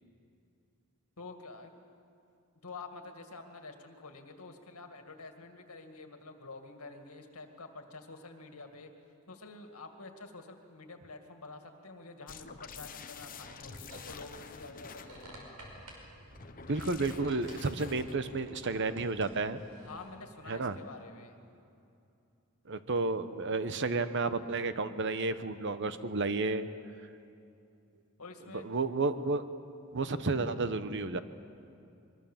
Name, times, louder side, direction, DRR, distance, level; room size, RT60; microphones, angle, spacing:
voice 1, 1.2-1.7 2.6-8.9 9.3-15.5 19.9-21.4 28.2-28.7, left 3 dB, 85° left, 5 dB, 2.2 m, -48 dB
sound 1, 12.3-15.2 16.3-18.5, left 5 dB, 40° left, 0.9 m, -48 dB
sound 2, 13.4-20.4, right 1 dB, 85° right, 5.4 m, -52 dB
voice 2, 16.7-19.6 20.5-20.8 22.7-26.7 28.6-29.5 29.9-31.2, right 3 dB, 55° right, 12 dB, 0.9 m, -31 dB
23.0 x 22.5 x 7.3 m, 2.6 s
head